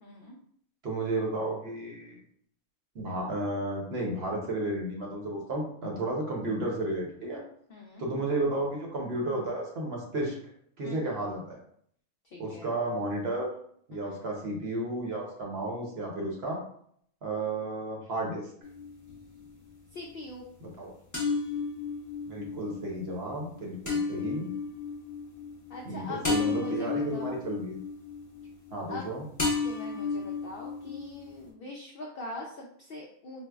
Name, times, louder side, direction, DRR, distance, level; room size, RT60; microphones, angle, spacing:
voice 1, 0.0-0.4 7.7-8.0 10.8-11.1 12.3-12.7 13.9-14.2 19.9-20.5 25.7-27.4 28.9-29.1 29.6-33.5, left 2 dB, 80° left, -1 dB, 0.5 m, -42 dB
voice 2, 0.8-2.2 2.9-7.4 8.0-10.4 10.8-11.6 12.4-13.5 13.9-16.6 17.2-18.5 20.6-20.9 22.3-24.5 25.9-27.8 28.7-29.2, right 1 dB, 55° right, -2 dB, 0.9 m, -32 dB
sound 1, 18.6-19.5 21.1-29.1 29.4-31.5, left 4 dB, 20° left, 0.5 m, -33 dB
4.4 x 2.0 x 2.3 m, 0.65 s
omnidirectional pair, 1.5 m